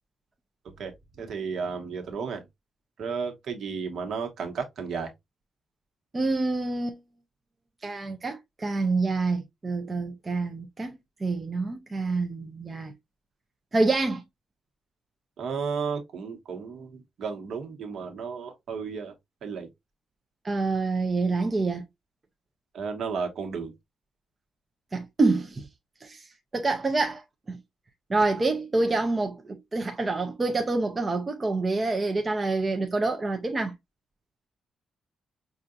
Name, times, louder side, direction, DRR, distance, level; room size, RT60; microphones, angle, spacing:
voice 1, 0.8-2.4 3.0-5.1 15.4-19.1 19.4-19.7 22.7-23.7, right 5 dB, 60° right, 1.1 m, -33 dB
voice 2, 6.1-7.0 7.8-10.9 11.2-12.9 13.7-14.2 20.4-21.9 24.9-25.7 26.0-26.2 26.5-27.6 28.1-33.7, right 3 dB, 20° right, 0.5 m, -27 dB
5.6 x 2.5 x 2.4 m
wide cardioid pair, 175°, 0 cm